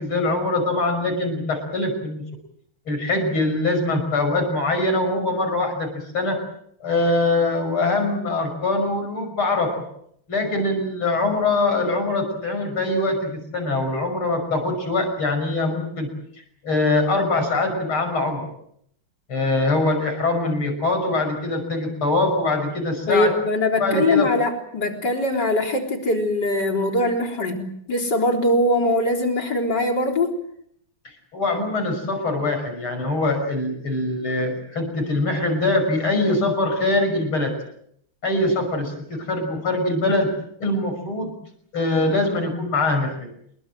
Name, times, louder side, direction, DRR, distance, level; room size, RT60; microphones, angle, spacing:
voice 1, 0.0-2.2 2.9-6.4 6.8-9.8 10.3-16.1 16.6-18.5 19.3-23.3 23.8-24.3 31.3-37.5 38.2-40.3 40.6-41.3 41.7-43.3, left 2 dB, 75° left, 6 dB, 6.8 m, -23 dB
voice 2, 23.1-30.4, left 2 dB, 50° left, 3 dB, 4.5 m, -22 dB
27.5 x 22.0 x 7.7 m, 0.69 s
omnidirectional pair, 2.3 m